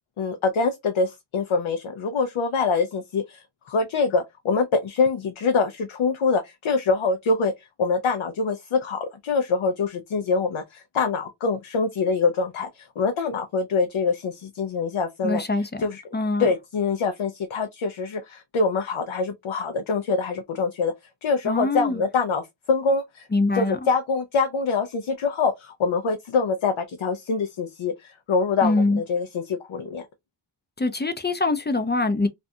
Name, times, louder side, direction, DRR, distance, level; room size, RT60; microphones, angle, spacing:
voice 1, 0.2-7.5 7.8-15.4 15.8-16.0 16.4-20.9 21.2-23.3 23.5-30.0, left 4 dB, 80° left, 0.5 m, -25 dB
voice 2, 15.2-15.8 16.1-16.5 21.5-22.0 23.3-23.8 28.6-29.0 30.8-32.3, left 3 dB, 25° left, 0.4 m, -23 dB
2.5 x 2.2 x 2.6 m
wide cardioid pair, 50°, 48 cm